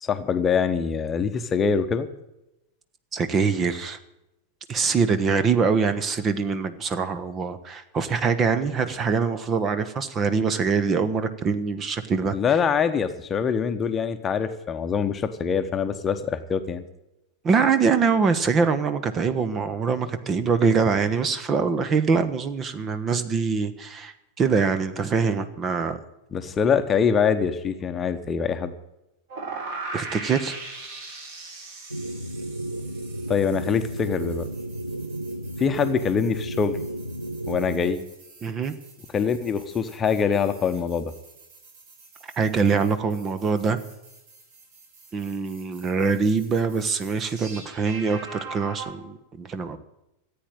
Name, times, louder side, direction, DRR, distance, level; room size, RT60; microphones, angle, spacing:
voice 1, 0.0-2.1 12.3-16.8 26.3-28.7 33.3-34.5 35.6-36.8 37.5-38.0 39.1-41.1, left 6 dB, 20° left, 8 dB, 1.1 m, -24 dB
voice 2, 3.1-4.0 4.7-12.4 17.4-26.0 29.9-30.6 38.4-38.7 42.2-43.8 45.1-49.8, right 5 dB, 25° right, 12 dB, 1.1 m, -24 dB
sound 1, 29.3-48.9, right 3 dB, 50° right, 4.1 m, -42 dB
sound 2, 31.9-38.0, right 1 dB, 90° left, 0.6 m, -33 dB
14.5 x 8.8 x 9.2 m, 0.91 s
figure-of-eight pair, 90°, 0 cm